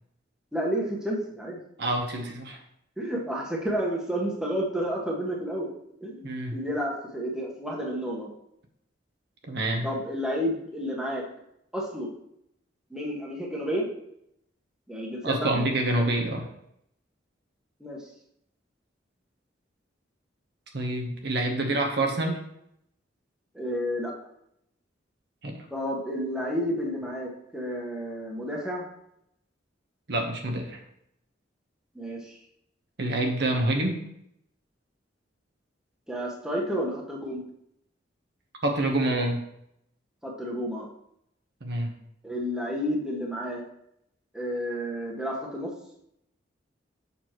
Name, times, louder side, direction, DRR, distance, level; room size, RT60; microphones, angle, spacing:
voice 1, 0.5-1.6 3.0-5.7 6.0-8.3 9.8-11.2 11.7-12.1 12.9-13.9 14.9-15.6 17.8-18.0 23.5-24.1 25.7-28.9 31.9-32.3 36.1-37.4 40.2-40.9 42.2-43.6 44.3-45.7, equal, 5° right, -3 dB, 1.2 m, -31 dB
voice 2, 1.8-2.6 6.2-6.6 9.4-9.9 15.2-16.5 20.7-22.4 25.4-25.7 30.1-30.8 33.0-34.0 38.6-39.4 41.6-41.9, right 1 dB, 65° right, 2 dB, 1.0 m, -27 dB
6.8 x 6.0 x 3.0 m, 0.76 s
head